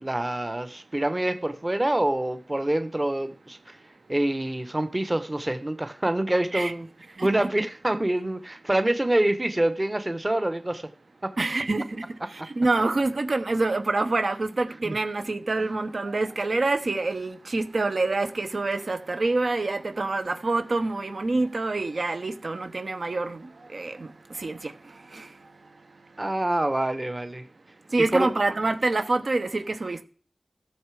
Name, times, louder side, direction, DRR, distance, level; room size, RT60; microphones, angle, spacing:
voice 1, 0.0-3.8 4.1-6.9 7.2-10.9 11.2-11.3 12.4-12.5 14.8-14.9 26.2-27.4 28.1-28.3, right 1 dB, 25° right, 1.1 m, -26 dB
voice 2, 7.2-7.5 11.4-12.0 12.6-23.4 23.7-24.1 24.4-24.7 25.1-25.3 27.9-30.0, right 3 dB, 65° right, 1.2 m, -26 dB
14.5 x 6.8 x 4.9 m
wide cardioid pair, 75°, 0 cm